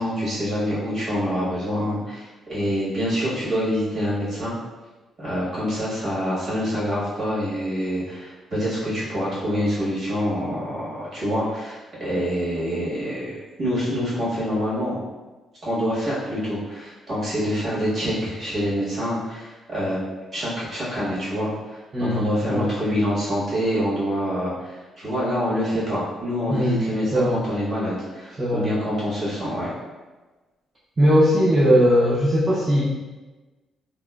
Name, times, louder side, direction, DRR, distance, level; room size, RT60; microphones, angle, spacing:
voice 1, 0.0-4.5 5.2-15.0 15.6-20.0 20.3-29.7, equal, 50° right, -8 dB, 1.4 m, -26 dB
voice 2, 21.9-22.7 26.5-26.8 27.1-27.4 28.4-28.7 31.0-32.8, equal, 25° right, -8 dB, 0.5 m, -19 dB
2.8 x 2.0 x 2.2 m, 1.2 s
cardioid pair, 90°, 0 cm